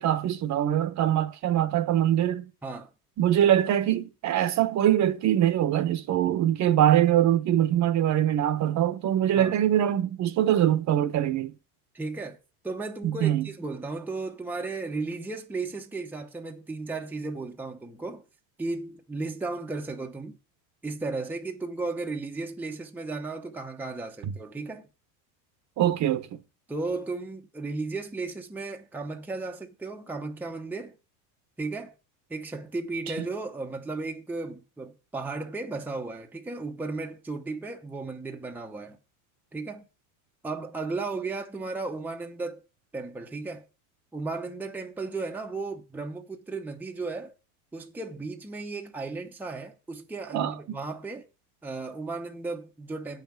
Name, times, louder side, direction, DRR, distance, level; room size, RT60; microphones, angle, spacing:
voice 1, 0.0-2.4 3.2-11.5 13.0-13.5 25.8-26.3 50.3-50.5, right 11 dB, 40° right, 1.0 m, -23 dB
voice 2, 11.9-12.4 12.6-18.2 18.6-20.4 20.8-24.8 26.7-31.0 31.6-31.9 32.3-39.0 39.5-39.8 40.4-42.6 42.9-43.7 44.1-47.3 47.7-51.3 51.6-53.2, right 3 dB, 5° right, 0.8 m, -35 dB
8.5 x 5.8 x 7.1 m
supercardioid pair, 125°, 44 cm